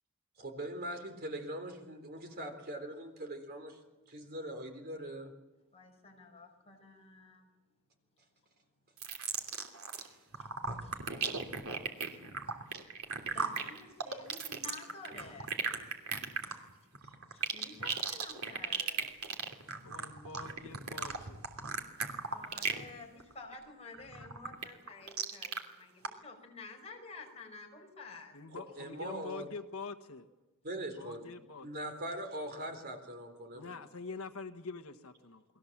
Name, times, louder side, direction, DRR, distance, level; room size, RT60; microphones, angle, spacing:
voice 1, 0.4-3.8 4.1-5.3 10.0-10.2 28.5-29.5 30.6-31.3 31.6-33.7, right 1 dB, 45° right, 5 dB, 3.8 m, -41 dB
voice 2, 5.7-7.5 10.0-11.0 12.1-12.2 13.3-15.5 17.3-19.1 22.3-28.4, left 3 dB, 30° left, 1 dB, 5.5 m, -51 dB
sound 1, 9.0-10.1 10.3-22.9 23.2-23.5 23.9-25.6 26.0-26.1, right 5 dB, 75° right, 2.9 m, -36 dB
voice 3, 19.8-21.4 24.2-24.3 28.3-30.2 30.9-31.7 33.5-35.4, left 4 dB, 70° left, 7 dB, 1.4 m, -45 dB
29.5 x 21.5 x 7.4 m, 1.0 s
head